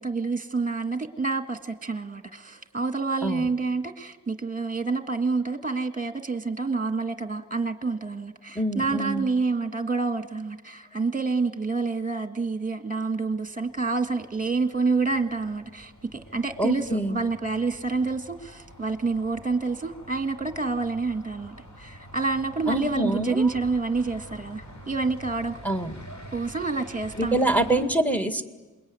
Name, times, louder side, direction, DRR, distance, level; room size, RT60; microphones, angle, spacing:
voice 1, 0.0-25.6 26.3-27.4 27.7-27.9, right 4 dB, 25° right, 8 dB, 1.7 m, -28 dB
voice 2, 8.6-9.3 16.6-17.2 22.7-23.5 25.6-26.0 27.2-28.5, right 1 dB, 5° left, 8 dB, 2.0 m, -25 dB
sound 1, 13.3-27.9, equal, 60° left, 6.3 m, -47 dB
27.0 x 21.5 x 9.6 m, 1.2 s
wide cardioid pair, 70°, 32 cm